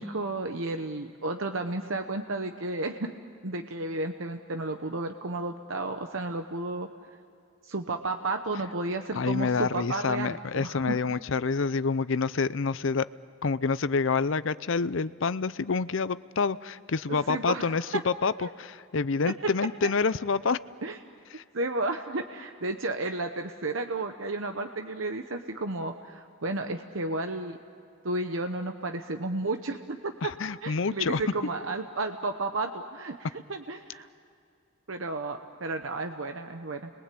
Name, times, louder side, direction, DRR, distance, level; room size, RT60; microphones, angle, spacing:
voice 1, 0.0-3.1 3.4-6.9 7.6-11.0 17.3-18.0 18.4-18.5 19.8-19.9 20.8-21.0 21.5-27.6 28.0-30.3 30.6-34.1 34.9-36.9, right 2 dB, 75° right, 6 dB, 1.1 m, -32 dB
voice 2, 9.1-13.0 13.4-20.6 21.3-21.4 30.2-31.2, left 4 dB, 70° left, 16 dB, 0.6 m, -27 dB
30.0 x 22.0 x 8.5 m, 2.4 s
head